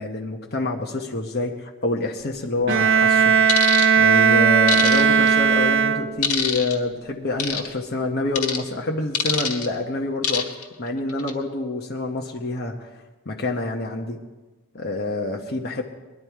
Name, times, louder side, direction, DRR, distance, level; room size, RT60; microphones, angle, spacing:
voice 1, 0.0-3.4 4.0-10.5 10.8-13.0 13.3-14.2 14.7-15.8, left 2 dB, 45° left, 0 dB, 1.1 m, -27 dB
Bowed string instrument, 2.7-6.4, right 6 dB, 55° right, 0.5 m, -17 dB
sound 1, 3.5-3.9 4.7-5.3 6.2-6.8 7.4-7.7 8.4-8.6 9.1-9.7 10.2-10.6 11.1-11.3, left 6 dB, 80° left, 1.7 m, -24 dB
21.0 x 12.0 x 4.6 m, 1.2 s
head